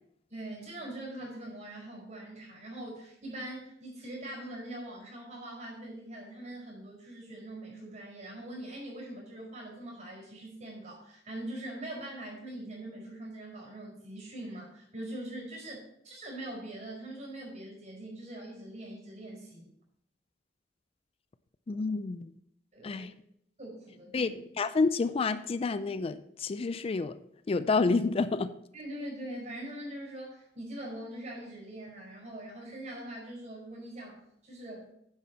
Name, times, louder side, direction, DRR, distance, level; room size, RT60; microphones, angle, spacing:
voice 1, 0.3-19.7 22.7-23.1 23.6-24.3 28.7-34.9, right 1 dB, 45° right, -3 dB, 4.4 m, -42 dB
voice 2, 21.7-22.3 22.8-23.1 24.1-27.2 27.5-28.5, left 4 dB, 30° left, 13 dB, 0.3 m, -29 dB
9.7 x 7.4 x 4.2 m, 0.73 s
head